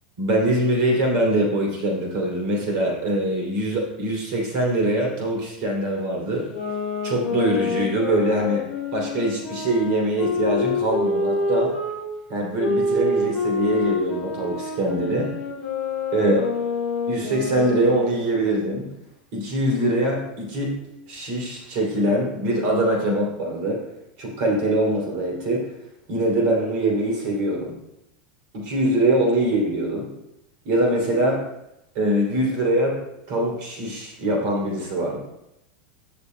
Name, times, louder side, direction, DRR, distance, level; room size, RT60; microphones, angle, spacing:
voice 1, 0.2-6.5 7.0-8.6 8.9-11.7 12.3-15.4 16.1-16.5 17.1-18.9 19.3-20.8 21.1-23.8 24.2-25.7 26.1-27.8 28.5-30.1 30.6-31.4 31.9-33.0 33.3-35.2, right 1 dB, 50° right, -1 dB, 2.9 m, -23 dB
sound 1, 6.4-12.0 12.6-18.2, left 3 dB, ahead, 3.1 m, -27 dB
17.0 x 6.7 x 2.2 m, 0.85 s
supercardioid pair, 170°, 6 cm